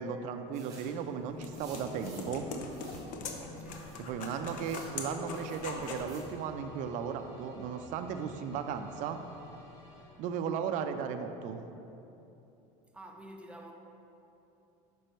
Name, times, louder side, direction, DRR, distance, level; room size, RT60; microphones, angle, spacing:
voice 1, 0.0-2.5 4.0-9.2 10.2-11.6, right 7 dB, 55° right, 8 dB, 0.5 m, -36 dB
sound 1, 0.5-1.0 1.5-2.4 2.7-3.1 3.7-4.9 5.3-6.3, right 3 dB, 25° right, 1.6 m, -55 dB
Geology Pinecone Bannister, 0.9-6.1, left 3 dB, 55° left, 0.7 m, -42 dB
sound 2, 1.2-10.7, left 2 dB, 25° left, 1.2 m, -56 dB
voice 2, 3.6-3.9 12.9-13.7, right 1 dB, 5° right, 1 dB, 0.6 m, -49 dB
6.5 x 5.3 x 4.5 m, 2.9 s
cardioid pair, 135°, 15 cm